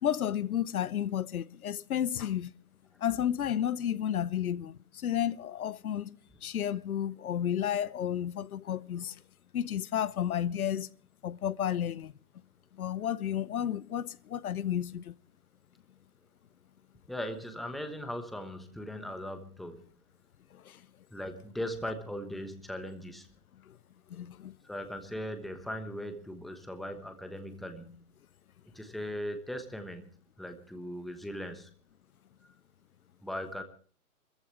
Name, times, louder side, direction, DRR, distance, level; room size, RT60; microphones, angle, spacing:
voice 1, 0.0-2.5 3.0-6.2 6.4-9.2 9.5-10.9 11.2-12.1 12.8-15.1 20.5-20.8 23.7-23.8 24.1-24.5, left 10 dB, 70° left, 0.8 m, -32 dB
voice 2, 17.1-19.8 21.1-23.3 24.6-27.9 28.7-30.0 30.4-31.7 33.2-33.6, equal, ahead, 1.1 m, -39 dB
26.5 x 14.5 x 3.2 m
hypercardioid pair, 135°, 45 cm